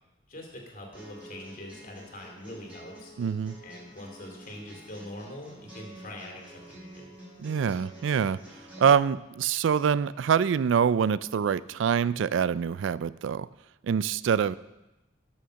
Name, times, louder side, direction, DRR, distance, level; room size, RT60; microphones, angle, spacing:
voice 1, 0.3-3.1 3.6-7.1, left 1 dB, 45° left, 1 dB, 2.6 m, -43 dB
sound 1, 0.9-8.9, right 1 dB, 5° right, 5.0 m, -48 dB
voice 2, 3.2-3.6 7.4-8.4 8.8-13.5 13.8-14.6, right 7 dB, 80° right, 18 dB, 0.3 m, -25 dB
12.5 x 6.4 x 6.3 m, 1.0 s
head